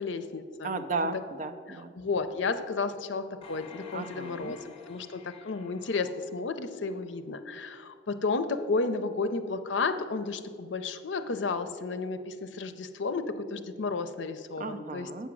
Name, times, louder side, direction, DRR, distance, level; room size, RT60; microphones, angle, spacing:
voice 1, 0.0-0.7 1.9-15.3, left 4 dB, 70° left, 10 dB, 0.5 m, -32 dB
voice 2, 0.6-1.9 3.9-4.6 14.6-15.3, right 3 dB, 40° right, 8 dB, 0.5 m, -34 dB
sound 1, 3.4-6.9 7.3-7.4, left 4 dB, 30° left, 1.0 m, -51 dB
8.0 x 6.1 x 6.1 m, 2.1 s
head